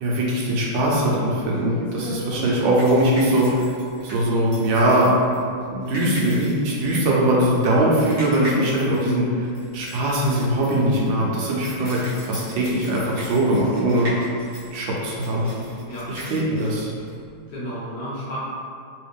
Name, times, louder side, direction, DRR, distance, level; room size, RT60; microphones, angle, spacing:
voice 1, 0.0-3.6 4.0-5.2 5.7-9.5 9.7-14.1 14.7-15.5 16.1-16.9, right 1 dB, 75° right, -4 dB, 1.4 m, -21 dB
sound 1, 1.5-17.5, equal, 25° right, 0.9 m, -39 dB
voice 2, 17.5-18.4, equal, 60° left, -8 dB, 1.6 m, -33 dB
3.4 x 3.1 x 3.3 m, 2.3 s
omnidirectional pair, 2.1 m